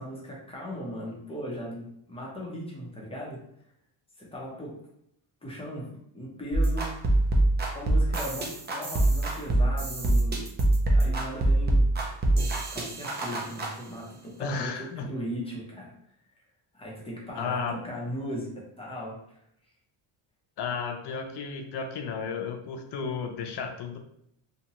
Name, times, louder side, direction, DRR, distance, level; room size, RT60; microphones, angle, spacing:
voice 1, 0.0-3.4 4.2-4.7 5.4-6.9 7.7-10.4 10.9-11.9 12.3-15.9 16.7-19.4, equal, 10° left, -4 dB, 0.7 m, -38 dB
sound 1, 6.5-13.7, right 1 dB, 25° right, 0.4 m, -24 dB
voice 2, 14.4-15.1 17.4-17.8 20.6-24.0, left 5 dB, 55° left, 5 dB, 0.5 m, -33 dB
2.8 x 2.1 x 2.9 m, 0.73 s
cardioid pair, 140°, 49 cm